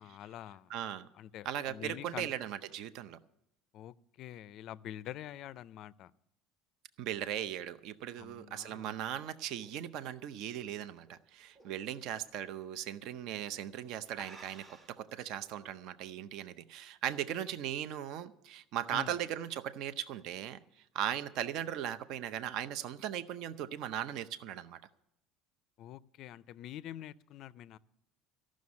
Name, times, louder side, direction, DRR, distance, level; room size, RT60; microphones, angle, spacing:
voice 1, 0.0-0.7 1.1-2.3 3.7-6.1 8.2-8.9 18.9-19.2 25.8-27.8, left 12 dB, 45° left, 18 dB, 0.4 m, -46 dB
voice 2, 0.7-1.1 1.4-3.2 7.0-20.6 20.9-24.8, right 10 dB, 55° right, 13 dB, 0.6 m, -38 dB
sound 1, 8.0-11.1 11.5-11.9 12.2-12.3 13.2-13.4 13.7-13.8 14.1-15.1, right 2 dB, 25° right, 1.2 m, -55 dB
14.5 x 6.3 x 9.5 m, 0.79 s
cardioid pair, 160°, 0 cm